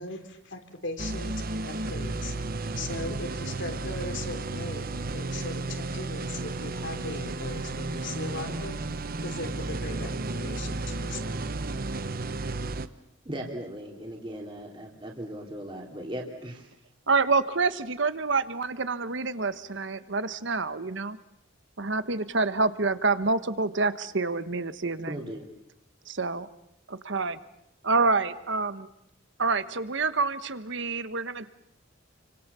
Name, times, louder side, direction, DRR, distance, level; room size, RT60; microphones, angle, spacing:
voice 1, 0.0-2.3 2.7-8.8 9.2-11.4, left 2 dB, 65° left, 6 dB, 3.1 m, -39 dB
sound 1, 1.0-12.9, right 2 dB, 45° right, 1.0 m, -33 dB
voice 2, 13.2-16.7 25.1-25.4, equal, 25° right, 0 dB, 3.2 m, -38 dB
voice 3, 17.1-21.2 21.8-25.2 26.1-26.5 26.9-27.4 27.8-28.9 29.4-31.5, right 3 dB, 60° right, 13 dB, 1.3 m, -27 dB
29.5 x 25.0 x 6.9 m, 0.81 s
head